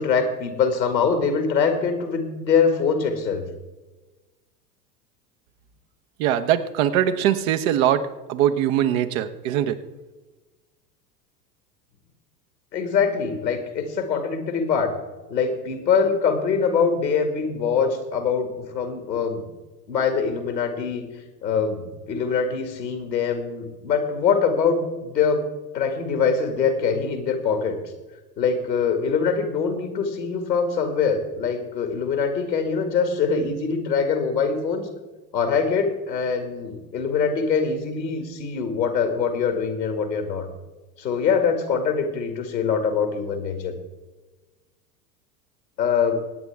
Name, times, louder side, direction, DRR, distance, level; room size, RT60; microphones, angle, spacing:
voice 1, 0.0-3.4 12.7-14.9 15.3-19.4 19.9-21.0 21.4-25.4 25.7-27.8 28.4-34.9 35.3-40.5 41.0-43.7 45.8-46.1, left 5 dB, 80° left, 6 dB, 2.2 m, -23 dB
voice 2, 6.2-9.8, right 10 dB, 50° right, 11 dB, 1.1 m, -22 dB
24.0 x 9.3 x 3.5 m, 1.2 s
figure-of-eight pair, 80°, 50 cm